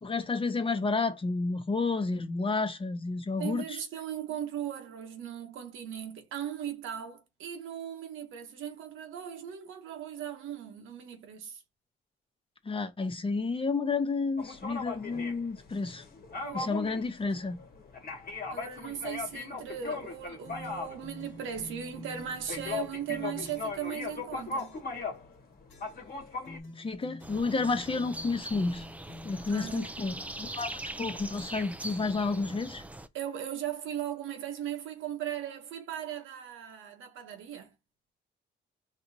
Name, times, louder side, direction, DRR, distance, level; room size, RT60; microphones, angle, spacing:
voice 1, 0.0-3.8 12.6-16.0 16.5-17.6 26.8-28.8 29.2-32.8, left 3 dB, 25° left, 0.9 m, -31 dB
voice 2, 3.4-11.6 16.4-16.8 18.5-24.8 29.5-29.9 33.1-37.7, right 9 dB, 80° right, 1.0 m, -38 dB
sound 1, 14.4-25.4 25.7-26.6, left 4 dB, 50° left, 1.3 m, -38 dB
sound 2, 20.4-23.9 24.6-25.0 25.7-26.1 26.4-29.9 30.6-31.0 31.3-32.7, left 2 dB, 70° left, 1.4 m, -49 dB
sound 3, 27.2-33.1, right 1 dB, 5° right, 0.4 m, -42 dB
4.9 x 3.0 x 2.7 m
cardioid pair, 90°, 20 cm